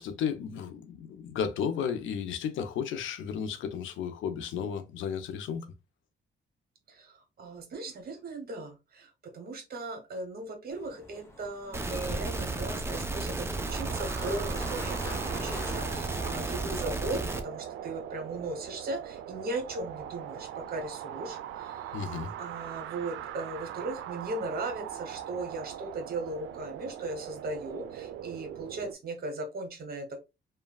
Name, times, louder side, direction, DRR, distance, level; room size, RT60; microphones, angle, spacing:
voice 1, 0.0-5.7 21.9-22.3, left 7 dB, 75° left, 0.5 m, -33 dB
voice 2, 6.9-22.0 22.4-30.2, right 2 dB, 50° right, 0.9 m, -38 dB
sound 1, 10.7-16.5, left 1 dB, 15° left, 0.8 m, -45 dB
sound 2, 11.7-17.4, right 2 dB, 10° right, 0.4 m, -33 dB
sound 3, 13.7-28.9, right 10 dB, 80° right, 0.4 m, -41 dB
3.0 x 2.2 x 2.2 m
cardioid pair, 90°, 20 cm